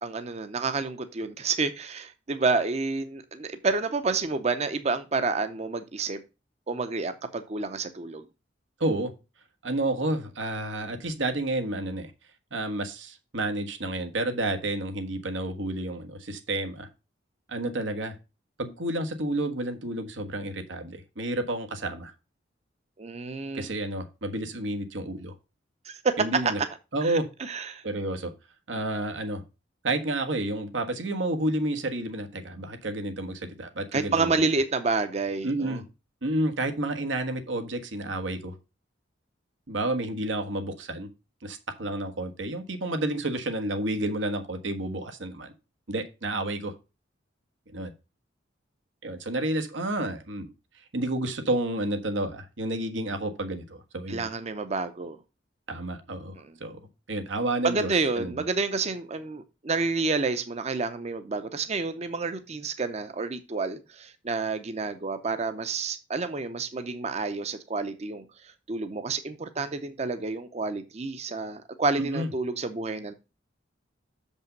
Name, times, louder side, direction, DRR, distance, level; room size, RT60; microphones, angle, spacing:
voice 1, 0.0-6.2 6.7-8.2 23.0-23.7 25.8-26.5 27.0-27.8 33.9-35.8 54.1-55.2 56.4-56.5 57.6-68.2 68.7-73.1, right 4 dB, 35° right, 0.6 m, -29 dB
voice 2, 8.8-9.1 9.6-12.1 12.5-16.9 17.5-18.1 18.6-22.1 23.5-25.3 26.2-26.6 26.9-27.3 27.8-28.3 28.7-29.4 29.8-34.3 35.4-35.8 36.2-38.5 39.7-41.1 41.4-45.5 45.9-46.7 47.7-47.9 49.0-50.5 50.9-54.3 55.7-56.8 57.1-58.4 72.0-72.3, right 1 dB, 90° right, 1.4 m, -30 dB
6.8 x 5.4 x 5.2 m
head